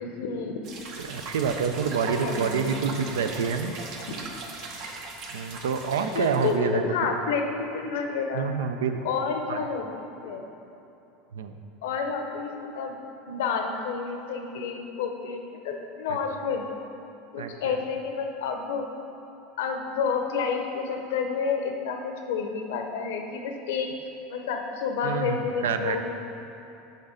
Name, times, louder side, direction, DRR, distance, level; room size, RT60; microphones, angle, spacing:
voice 1, 0.0-0.7 2.1-2.9 6.1-8.5 9.0-10.5 11.8-13.0 13.3-16.7 17.3-18.9 19.6-23.9 24.3-26.1, left 5 dB, 80° left, 4 dB, 0.6 m, -30 dB
sound 1, 0.6-6.6, right 3 dB, 55° right, 0.8 m, -39 dB
voice 2, 1.0-3.7 5.3-7.1 8.3-9.0 9.5-9.7 11.3-11.5 16.1-16.2 17.4-17.8 25.0-26.0, right 6 dB, 90° right, 7 dB, 0.4 m, -28 dB
6.4 x 3.9 x 4.9 m, 3.0 s
supercardioid pair, 105°, 0 cm